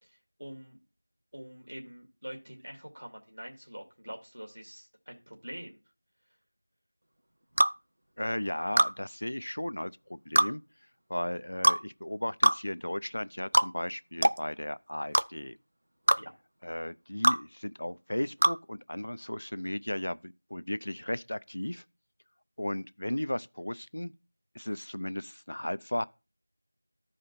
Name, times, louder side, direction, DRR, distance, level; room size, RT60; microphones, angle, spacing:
voice 1, 0.0-0.8 1.3-5.8 16.2-16.3, equal, 70° right, 2.6 m, -45 dB
sound 1, 7.6-7.8 8.8-8.9 10.4-10.5 11.6-11.8 12.4-12.6 13.5-13.7 14.2-14.4 15.1-15.3 16.1-16.2 17.2-17.4 18.4-18.6, right 1 dB, 50° right, 0.4 m, -22 dB
voice 2, 8.2-10.6 11.1-15.6 16.6-21.8 22.6-24.1 24.5-26.1, left 1 dB, 50° left, 0.4 m, -35 dB
13.5 x 5.0 x 4.2 m
figure-of-eight pair, 175°, 0 cm